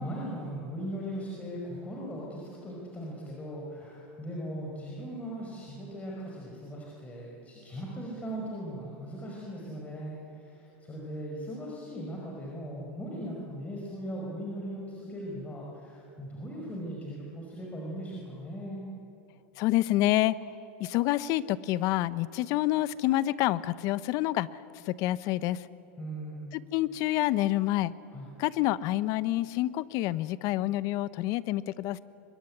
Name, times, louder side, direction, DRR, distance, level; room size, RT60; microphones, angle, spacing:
voice 1, 0.0-18.9 26.0-26.5 28.1-28.3, equal, 20° left, -3 dB, 5.2 m, -39 dB
voice 2, 19.6-20.4 20.8-24.5 24.9-25.7 26.5-27.9 28.4-32.0, left 16 dB, 55° left, 17 dB, 0.9 m, -27 dB
23.5 x 22.0 x 9.9 m, 2.8 s
supercardioid pair, 115°, 7 cm